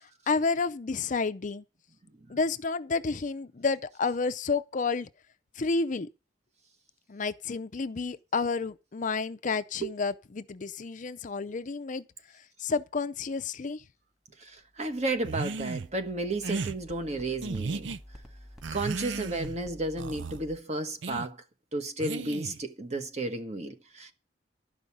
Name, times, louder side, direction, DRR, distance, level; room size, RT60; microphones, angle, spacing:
voice 1, 0.3-1.6 2.3-5.1 5.6-6.1 7.1-12.0 12.6-13.8, left 4 dB, 45° left, 0.5 m, -30 dB
voice 2, 14.4-18.0 18.7-21.4 21.7-24.1, right 2 dB, 40° right, 1.3 m, -33 dB
sound 1, 14.6-20.6, equal, 5° right, 1.7 m, -50 dB
sound 2, 15.2-15.9 16.4-16.8 17.4-18.0 18.6-19.6 20.0-20.4 21.0-21.3 22.0-22.6, right 4 dB, 80° right, 0.5 m, -35 dB
12.5 x 5.4 x 8.5 m
head